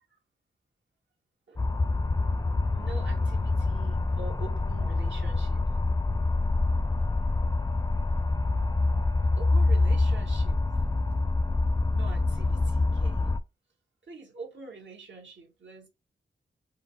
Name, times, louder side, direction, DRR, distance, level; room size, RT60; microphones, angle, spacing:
sound 1, 1.6-13.4, left 2 dB, 15° left, 0.4 m, -26 dB
voice 1, 2.7-5.6 9.4-10.6 11.9-13.3 14.0-15.9, right 4 dB, 70° right, 1.8 m, -45 dB
4.7 x 2.0 x 4.5 m
wide cardioid pair, 120°, 19 cm